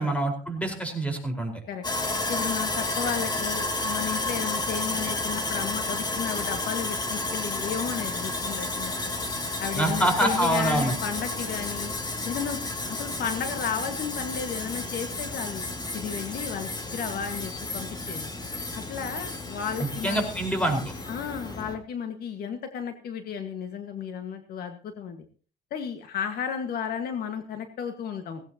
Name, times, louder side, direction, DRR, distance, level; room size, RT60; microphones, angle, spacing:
voice 1, 0.0-1.5 9.7-10.9 19.8-20.9, right 1 dB, 10° left, 3 dB, 4.6 m, -26 dB
Sawing, 1.8-21.7, left 2 dB, 25° left, 2.3 m, -32 dB
voice 2, 2.3-9.1 9.6-11.9 12.3-12.6 12.9-15.6 15.9-18.3 18.7-20.3 21.1-25.3 25.7-28.4, left 7 dB, 65° left, 6 dB, 1.8 m, -33 dB
17.5 x 16.5 x 2.9 m, 0.38 s
cardioid pair, 110°, 17 cm